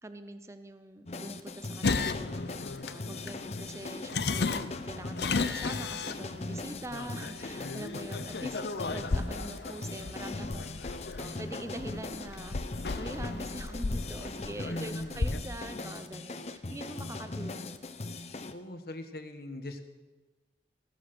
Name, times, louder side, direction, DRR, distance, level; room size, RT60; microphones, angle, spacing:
voice 1, 0.0-17.9, right 1 dB, 15° right, 9 dB, 0.8 m, -44 dB
sound 1, 1.1-18.5, left 2 dB, 40° left, 0.8 m, -40 dB
sound 2, 1.8-15.4, left 4 dB, 75° left, 0.7 m, -35 dB
sound 3, 6.2-15.0, right 1 dB, 85° right, 2.6 m, -57 dB
voice 2, 14.7-15.3 18.5-19.8, left 1 dB, 60° left, 7 dB, 1.4 m, -40 dB
16.5 x 12.5 x 6.1 m, 1.2 s
head